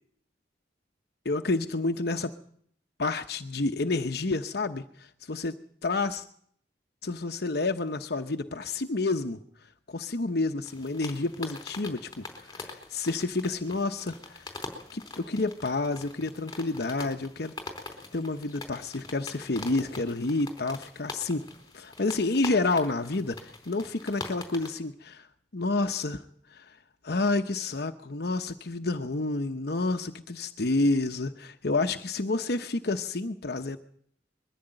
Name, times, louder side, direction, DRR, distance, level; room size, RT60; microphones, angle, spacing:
voice 1, 1.2-2.3 3.0-5.5 5.8-6.2 7.0-9.4 9.9-14.6 14.9-17.5 18.1-21.5 21.7-25.3 25.5-26.2 26.5-26.7 27.0-33.8, left 3 dB, 60° left, 7 dB, 1.0 m, -29 dB
sound 1, 10.6-24.8, left 2 dB, 20° left, 4.1 m, -43 dB
22.0 x 14.5 x 9.0 m, 0.63 s
head